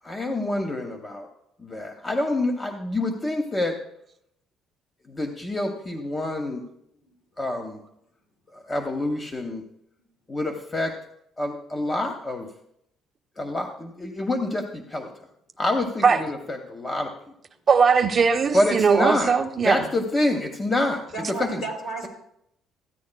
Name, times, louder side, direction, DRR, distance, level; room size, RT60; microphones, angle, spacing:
voice 1, 0.0-1.3 1.6-3.8 5.1-6.6 7.4-7.8 8.5-9.6 10.3-10.9 11.4-12.5 13.4-15.1 15.6-17.1 18.5-19.3 19.6-21.0 21.4-21.6, left 1 dB, 20° left, 4 dB, 0.7 m, -27 dB
voice 2, 17.7-19.8, right 5 dB, 35° right, 7 dB, 0.6 m, -19 dB
voice 3, 21.1-22.1, right 2 dB, 60° left, 0 dB, 3.4 m, -33 dB
14.5 x 9.6 x 2.2 m, 0.75 s
cardioid pair, 130°, 0 cm